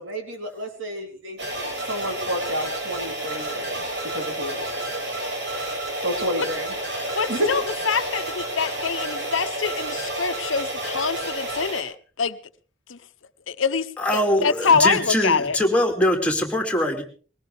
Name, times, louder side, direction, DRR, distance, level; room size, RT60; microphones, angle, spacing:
voice 1, 0.0-4.8 6.0-6.7 7.3-7.5, equal, 85° right, 4 dB, 3.8 m, -30 dB
sound 1, 1.4-11.8, right 1 dB, 60° right, 5.6 m, -30 dB
voice 2, 7.1-12.4 12.9-13.0 13.5-15.6, left 5 dB, 85° left, 13 dB, 0.9 m, -25 dB
voice 3, 14.0-17.0, equal, 5° left, 2 dB, 2.7 m, -22 dB
21.0 x 18.5 x 3.5 m, 0.40 s
head